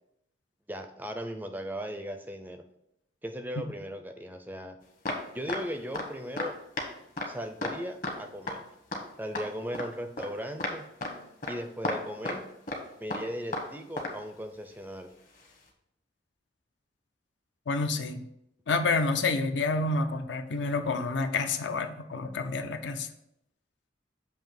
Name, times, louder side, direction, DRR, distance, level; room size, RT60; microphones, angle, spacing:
voice 1, 0.7-2.7 3.2-4.8 5.3-6.6 7.3-8.7 9.2-10.9 11.5-12.5 13.0-15.1, equal, 10° right, 7 dB, 0.4 m, -37 dB
sound 1, 5.1-5.6 5.9-6.1 6.4-6.5 6.8-6.9 7.2-7.3 7.6-7.8 8.0-8.2 8.5-8.6 8.9-9.0 9.4-9.9 10.2-10.3 10.6-10.8 11.0-11.2 11.4-11.6 11.8-12.4 12.7-12.8 13.1-13.7 14.0-14.2 15.4-15.5, left 2 dB, 45° left, 1.1 m, -33 dB
voice 2, 17.7-18.2 18.7-23.1, left 3 dB, 75° left, 8 dB, 0.6 m, -29 dB
7.1 x 2.8 x 5.8 m, 0.79 s
head